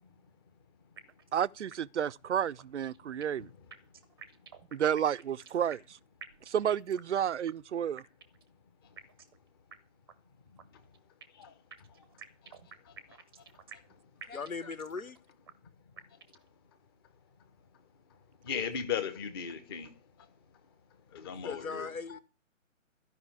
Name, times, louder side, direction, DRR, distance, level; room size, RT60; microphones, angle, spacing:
sound 1, 1.0-1.4 1.7-1.8 2.1-2.2 2.6-3.4 3.7-5.9 6.2-7.2 7.5-7.6 8.0-8.5 9.0-9.4 9.7-9.8 10.1-10.2 10.6-11.4 11.7-13.9 14.2-15.2 15.5-15.6 16.0-16.5, right 6 dB, 20° right, 0.6 m, -50 dB
voice 1, 1.3-3.5 4.7-5.8 6.5-8.0, right 9 dB, 60° right, 0.5 m, -31 dB
voice 2, 14.3-15.2 21.4-22.2, left 4 dB, 80° left, 1.3 m, -39 dB
voice 3, 18.4-19.9 21.1-21.9, left 7 dB, 20° left, 0.8 m, -36 dB
13.0 x 5.5 x 9.2 m
figure-of-eight pair, 145°, 41 cm